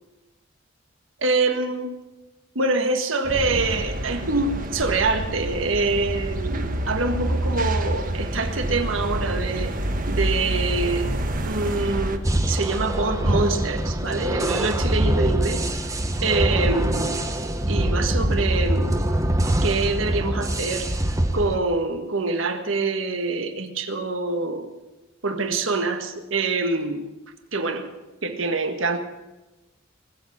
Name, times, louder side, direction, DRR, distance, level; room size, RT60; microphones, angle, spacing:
voice 1, 1.2-1.9 2.5-9.7 10.1-11.1 11.4-15.6 16.2-17.2 17.7-19.1 19.6-20.9 21.3-24.7 25.2-27.0 27.5-27.9 28.2-29.0, right 3 dB, 80° right, 6 dB, 1.6 m, -25 dB
sound 1, 3.2-12.2, right 1 dB, 45° right, 1.3 m, -27 dB
sound 2, 12.2-21.6, right 1 dB, 15° right, 1.1 m, -23 dB
20.0 x 7.8 x 8.5 m, 1.1 s
head